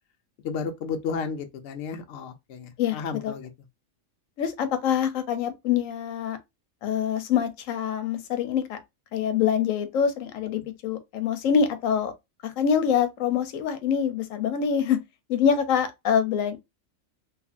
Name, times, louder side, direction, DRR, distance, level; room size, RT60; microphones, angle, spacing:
voice 1, 0.4-3.5, left 5 dB, 65° left, 0.7 m, -33 dB
voice 2, 4.4-6.4 6.8-8.8 9.1-12.1 12.4-15.0 15.3-16.6, left 8 dB, 80° left, 1.0 m, -25 dB
2.8 x 2.4 x 2.4 m
omnidirectional pair, 1.4 m